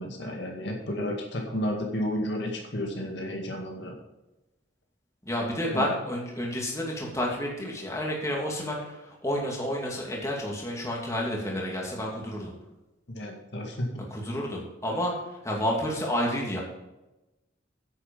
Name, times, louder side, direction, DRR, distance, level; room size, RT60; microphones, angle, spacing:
voice 1, 0.0-3.9 5.7-5.9 13.1-13.9, equal, 60° left, 1 dB, 2.1 m, -32 dB
voice 2, 5.3-12.5 14.1-16.6, equal, 15° left, -2 dB, 2.5 m, -30 dB
10.0 x 8.7 x 5.4 m, 1.0 s
head